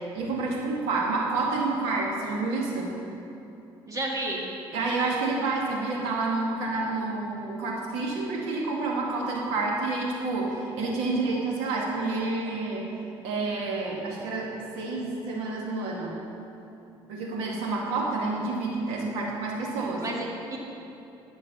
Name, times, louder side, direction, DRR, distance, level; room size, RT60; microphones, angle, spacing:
voice 1, 0.0-2.9 4.7-12.8 13.2-16.2 17.1-20.0, right 3 dB, 90° right, -2 dB, 2.2 m, -29 dB
voice 2, 3.9-4.5 20.0-20.6, right 1 dB, 35° right, -1 dB, 2.2 m, -31 dB
12.0 x 6.2 x 6.8 m, 2.9 s
cardioid pair, 95°, 10 cm